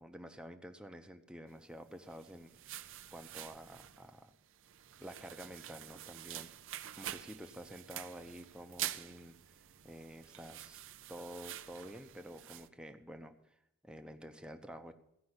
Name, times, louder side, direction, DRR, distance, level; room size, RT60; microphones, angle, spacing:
voice 1, 0.0-4.3 5.0-6.5 7.0-13.3 13.8-14.9, equal, 5° right, 6 dB, 0.8 m, -50 dB
sound 1, 1.9-12.7, right 12 dB, 60° right, 0.6 m, -47 dB
15.0 x 5.5 x 9.7 m, 0.80 s
head